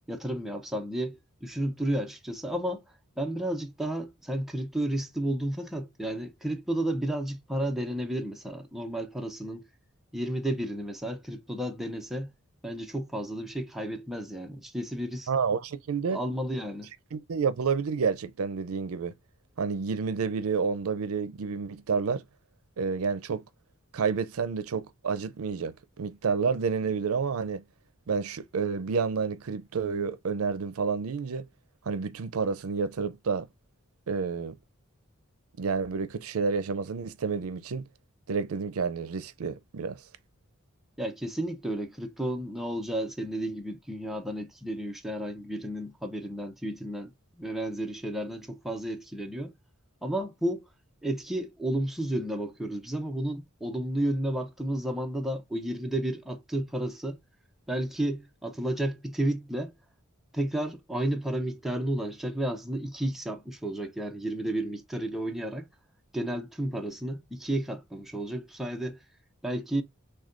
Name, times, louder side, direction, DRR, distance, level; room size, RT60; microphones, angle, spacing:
voice 1, 0.1-2.8 3.2-9.7 10.1-12.3 12.6-15.3 16.1-16.9 41.0-49.5 50.0-50.7 51.0-57.2 57.7-59.7 60.3-65.7 66.1-69.0 69.4-69.8, right 1 dB, ahead, 0.6 m, -32 dB
voice 2, 15.3-16.2 17.1-19.1 19.6-22.2 22.8-23.4 23.9-27.6 28.1-31.5 31.9-33.5 34.1-34.6 35.6-37.8 38.3-40.0, right 5 dB, 85° right, 0.5 m, -29 dB
6.2 x 2.3 x 2.5 m
head